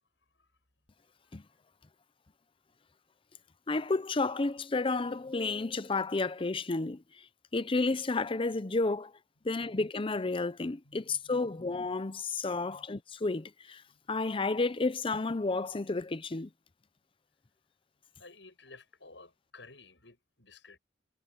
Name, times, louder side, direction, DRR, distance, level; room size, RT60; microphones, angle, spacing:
voice 1, 3.7-7.0 7.5-9.1 9.4-13.8 14.1-16.5, left 3 dB, 30° left, 0.6 m, -31 dB
voice 2, 9.4-9.7 10.8-11.7 12.5-12.9 13.9-14.1 18.2-20.8, left 3 dB, 85° left, 7.5 m, -55 dB
head